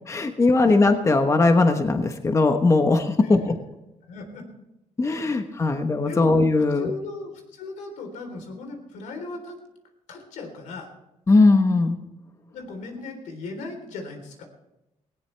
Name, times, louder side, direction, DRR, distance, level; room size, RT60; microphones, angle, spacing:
voice 1, 0.1-3.5 5.0-6.9 11.3-12.0, left 3 dB, 25° left, 6 dB, 1.2 m, -19 dB
voice 2, 4.1-4.5 6.0-6.3 6.7-9.6 10.1-10.9 12.5-14.4, left 3 dB, 90° left, 4 dB, 3.8 m, -37 dB
18.5 x 17.5 x 3.4 m, 0.92 s
cardioid pair, 120°, 13 cm